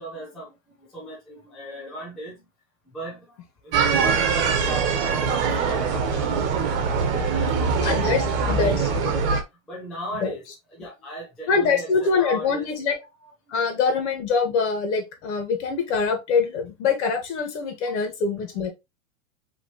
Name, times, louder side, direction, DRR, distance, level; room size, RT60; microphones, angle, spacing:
voice 1, 0.0-2.5 2.8-6.6 7.0-9.3 9.7-10.4 10.7-12.7 13.2-13.3 17.8-17.9, right 1 dB, ahead, 0.3 m, -38 dB
sound 1, 3.7-9.4, right 5 dB, 45° right, 1.2 m, -23 dB
voice 2, 7.8-9.2 10.1-10.3 11.5-13.0 13.5-18.7, left 5 dB, 55° left, 1.9 m, -24 dB
5.2 x 3.2 x 3.1 m
supercardioid pair, 155°, 40 cm